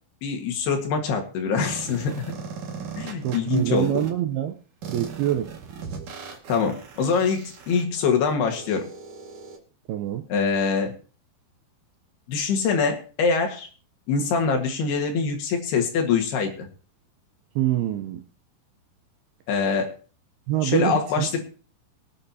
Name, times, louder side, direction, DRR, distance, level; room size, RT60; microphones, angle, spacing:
voice 1, 0.2-2.1 3.0-4.1 6.5-8.9 10.3-10.9 12.3-13.7 14.1-16.7 19.5-19.9 20.6-21.4, left 5 dB, 65° left, 3 dB, 3.5 m, -24 dB
sound 1, 1.6-4.1 4.8-9.6, right 6 dB, 50° right, 2.9 m, -38 dB
voice 2, 3.2-4.6 4.9-5.6 9.9-10.3 17.6-18.2 20.5-21.3, right 12 dB, 80° right, 6 dB, 2.4 m, -25 dB
23.5 x 9.0 x 2.8 m, 0.36 s
omnidirectional pair, 5.3 m